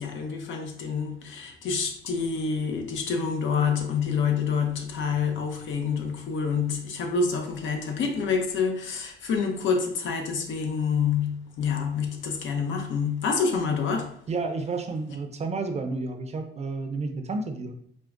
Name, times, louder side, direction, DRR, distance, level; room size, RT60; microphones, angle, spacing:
voice 1, 0.0-14.2, left 5 dB, 70° left, 0.6 m, -27 dB
voice 2, 14.3-17.7, right 3 dB, 35° right, 0.4 m, -31 dB
4.5 x 2.1 x 2.4 m
cardioid pair, 90°, 20 cm